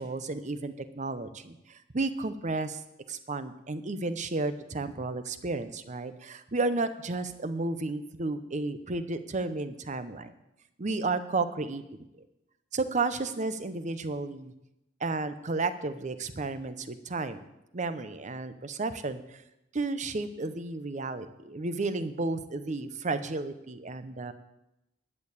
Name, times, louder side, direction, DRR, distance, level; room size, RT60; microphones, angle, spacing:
voice 1, 0.0-2.8 3.1-10.3 10.8-11.8 12.7-14.5 15.0-17.4 17.7-19.4 19.7-24.3, right 3 dB, 40° right, 12 dB, 0.7 m, -32 dB
11.0 x 6.7 x 8.4 m, 0.89 s
head